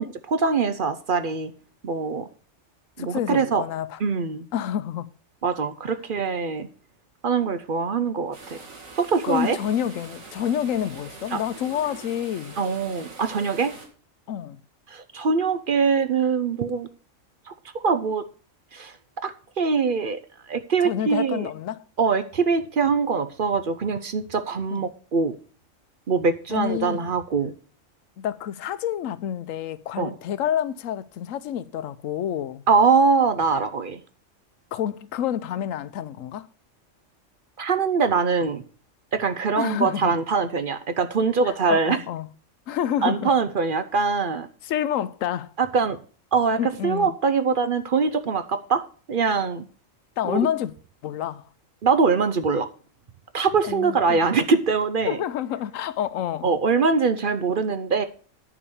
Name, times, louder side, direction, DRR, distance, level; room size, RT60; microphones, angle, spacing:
voice 1, 0.0-1.5 1.8-2.3 3.0-3.6 4.0-4.5 5.4-6.7 7.2-8.6 9.0-9.6 11.3-11.4 12.6-13.7 14.9-16.9 17.5-18.2 18.7-19.0 19.2-20.2 20.5-21.5 22.0-25.3 26.1-27.5 30.0-30.2 32.7-34.0 37.6-38.6 39.1-42.0 43.0-44.5 45.6-46.0 46.3-48.8 49.1-49.6 50.2-50.5 51.8-52.7 53.3-55.2 56.4-58.0, right 5 dB, 50° right, 0.7 m, -23 dB
voice 2, 3.0-4.0 4.5-5.1 9.2-12.6 14.3-14.6 20.8-21.8 24.7-24.8 26.5-27.1 28.2-32.6 34.7-36.5 39.5-40.1 41.4-42.3 42.7-43.3 44.6-45.5 46.6-47.1 50.2-50.7 51.0-51.4 53.6-54.2 55.1-56.5, left 10 dB, 90° left, 1.0 m, -28 dB
sound 1, 8.3-13.9, right 3 dB, 90° right, 2.5 m, -43 dB
10.0 x 4.9 x 7.0 m
omnidirectional pair, 1.3 m